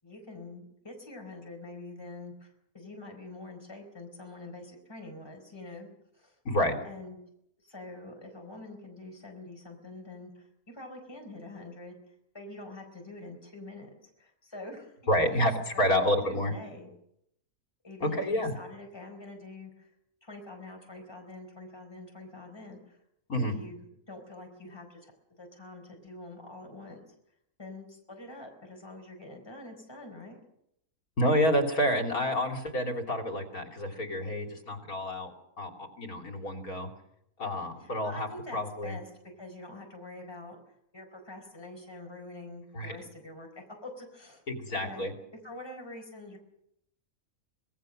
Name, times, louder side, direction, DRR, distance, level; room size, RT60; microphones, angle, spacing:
voice 1, 0.0-5.9 6.1-6.4 6.8-7.2 7.6-12.0 12.3-16.9 17.8-19.9 20.2-23.0 23.4-25.1 25.4-27.0 27.6-30.4 37.8-39.1 39.4-40.6 40.9-44.4 44.7-45.1 45.4-46.4, left 2 dB, 15° left, 3 dB, 4.4 m, -45 dB
voice 2, 6.5-6.8 15.1-15.5 15.8-16.5 18.0-18.5 23.3-23.5 31.2-35.3 35.6-36.9 37.4-38.3 38.5-39.0 42.7-43.0 44.5-45.1, equal, 75° left, 4 dB, 3.6 m, -28 dB
25.5 x 19.0 x 6.5 m, 0.77 s
omnidirectional pair, 1.5 m